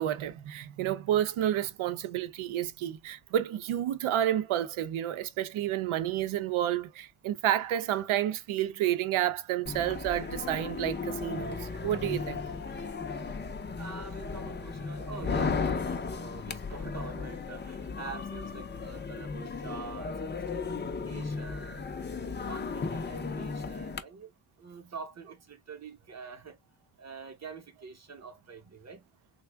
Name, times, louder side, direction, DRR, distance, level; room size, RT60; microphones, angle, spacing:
voice 1, 0.0-12.4, right 12 dB, 80° right, 0.6 m, -30 dB
sound 1, 9.7-24.0, left 4 dB, 25° left, 0.4 m, -35 dB
voice 2, 13.8-21.9 22.5-24.3 24.6-26.6 27.0-29.1, right 5 dB, 35° right, 0.8 m, -45 dB
3.4 x 2.1 x 3.3 m
cardioid pair, 125°, 48 cm